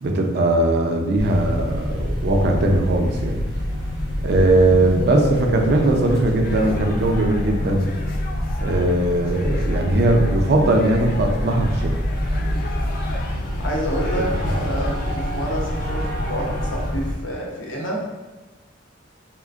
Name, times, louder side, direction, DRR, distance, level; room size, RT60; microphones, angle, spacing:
voice 1, 0.0-3.4 4.2-7.9 8.6-11.9 14.3-14.7, right 1 dB, 55° right, 2 dB, 0.4 m, -19 dB
sound 1, 1.2-17.1, equal, 85° left, 1.4 m, -26 dB
Keyboard (musical), 5.0-7.5, equal, 15° right, 0.7 m, -33 dB
sound 2, 6.4-16.9, left 3 dB, 45° left, 0.3 m, -38 dB
voice 2, 13.6-18.0, equal, 65° left, -2 dB, 0.7 m, -29 dB
3.6 x 2.4 x 2.4 m, 1.2 s
head